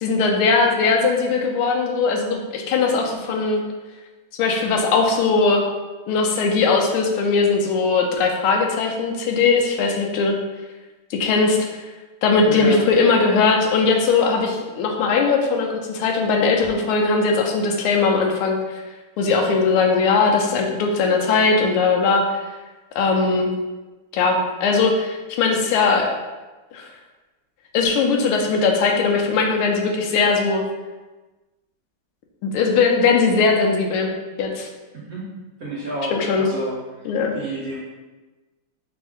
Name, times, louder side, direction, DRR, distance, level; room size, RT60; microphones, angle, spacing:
voice 1, 0.0-3.6 4.4-5.6 6.1-10.3 11.1-11.9 12.2-18.6 19.2-22.4 22.9-23.5 24.1-26.1 26.7-26.9 27.7-30.6 32.4-34.1 34.4-34.7 36.1-36.5 37.0-37.3, left 4 dB, 90° left, 2 dB, 1.5 m, -19 dB
voice 2, 12.4-12.8 34.9-35.3 35.6-37.1 37.3-37.8, right 1 dB, 60° right, -5 dB, 1.0 m, -30 dB
3.5 x 3.3 x 3.5 m, 1.2 s
omnidirectional pair, 2.3 m